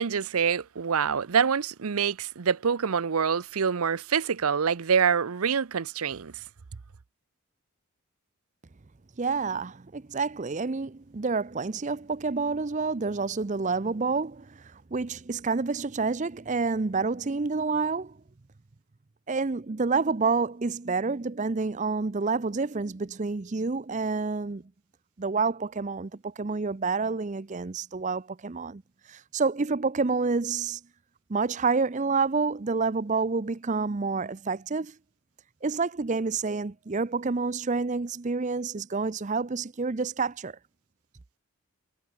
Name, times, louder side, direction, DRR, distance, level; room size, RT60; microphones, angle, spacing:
voice 1, 0.0-6.3, right 6 dB, 80° right, 0.6 m, -26 dB
voice 2, 9.2-18.1 19.3-24.6 25.2-28.8 29.1-30.8 31.3-34.9 35.6-40.5, right 4 dB, 35° right, 0.5 m, -28 dB
head